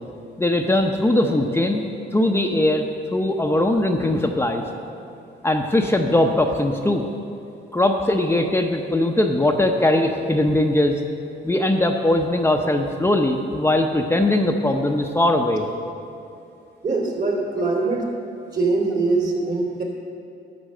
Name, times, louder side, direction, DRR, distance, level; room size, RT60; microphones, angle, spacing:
voice 1, 0.4-1.8 2.1-2.9 3.1-4.7 5.4-7.0 7.7-11.0 11.4-15.7, left 1 dB, 10° left, 3 dB, 0.7 m, -20 dB
voice 2, 16.8-18.1 18.5-19.8, right 3 dB, 50° right, 0 dB, 2.8 m, -22 dB
11.5 x 6.9 x 6.6 m, 2.6 s
cardioid pair, 90°, 20 cm